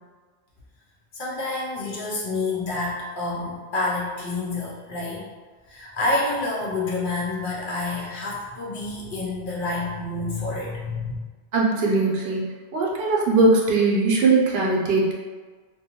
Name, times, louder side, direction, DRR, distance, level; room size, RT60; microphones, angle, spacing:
voice 1, 1.1-5.2 5.7-11.1, left 2 dB, 60° left, -4 dB, 0.7 m, -28 dB
voice 2, 11.5-12.4 12.7-15.1, right 3 dB, 70° right, -3 dB, 0.8 m, -20 dB
2.5 x 2.2 x 2.8 m, 1.4 s
omnidirectional pair, 1.1 m